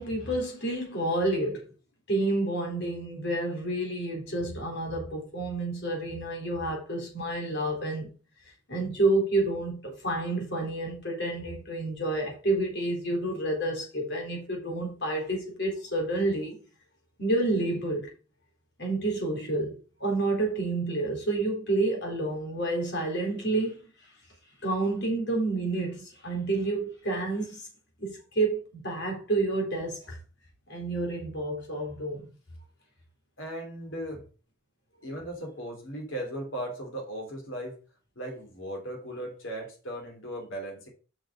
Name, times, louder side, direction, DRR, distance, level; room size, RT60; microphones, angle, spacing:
voice 1, 0.0-1.7 2.1-8.1 8.7-16.6 17.2-18.1 18.8-23.8 24.6-27.7 28.0-30.2 30.7-32.3, right 2 dB, 60° left, 3.9 m, -29 dB
voice 2, 33.4-34.3 35.0-37.8 38.1-40.9, right 1 dB, 80° left, 3.3 m, -37 dB
6.4 x 6.2 x 5.1 m
head